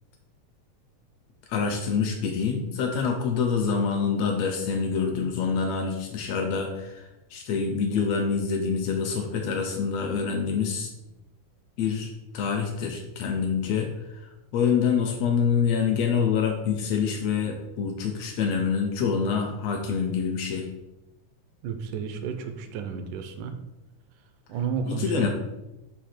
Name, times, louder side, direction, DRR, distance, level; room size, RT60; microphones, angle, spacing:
voice 1, 1.5-7.0 7.3-10.9 11.8-13.9 14.5-20.7 24.9-25.3, left 6 dB, 80° left, 3 dB, 1.5 m, -26 dB
voice 2, 21.6-23.6 24.5-25.3, right 6 dB, 80° right, 7 dB, 2.2 m, -32 dB
6.7 x 2.8 x 5.8 m, 0.98 s
omnidirectional pair, 3.7 m